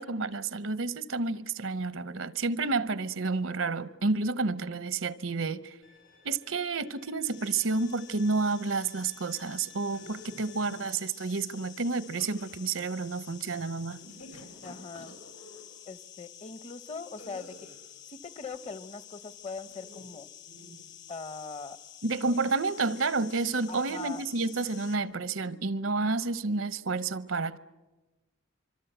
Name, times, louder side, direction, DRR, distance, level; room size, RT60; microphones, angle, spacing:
voice 1, 0.0-5.8 6.2-14.0 22.0-27.6, right 3 dB, 75° right, 0.8 m, -30 dB
Bowed string instrument, 5.8-10.9, left 6 dB, 75° left, 4.7 m, -58 dB
sound 1, 7.2-25.0, left 10 dB, 55° left, 1.3 m, -50 dB
sound 2, 9.9-10.5 12.0-12.7 13.9-15.6 17.2-17.9 19.6-20.1 20.5-20.9 22.2-22.7, left 1 dB, 90° left, 6.3 m, -50 dB
voice 2, 10.5-11.0 14.6-15.2 15.9-17.7 18.1-20.3 21.1-21.8 23.7-24.2, left 4 dB, 30° left, 0.8 m, -41 dB
25.0 x 25.0 x 8.0 m
head